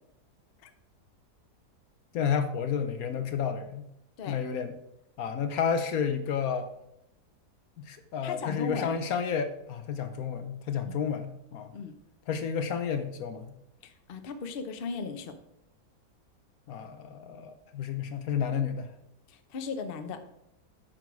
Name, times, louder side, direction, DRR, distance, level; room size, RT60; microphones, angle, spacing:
voice 1, 2.1-3.9 4.3-4.8 5.2-6.7 7.8-11.7 12.3-13.6 16.7-18.9, left 7 dB, 65° left, 9 dB, 1.0 m, -31 dB
voice 2, 8.2-8.9 10.9-11.0 11.7-12.0 13.8-15.4 19.3-20.2, left 4 dB, 50° left, 8 dB, 0.7 m, -37 dB
9.0 x 6.2 x 4.7 m, 0.82 s
omnidirectional pair, 1.8 m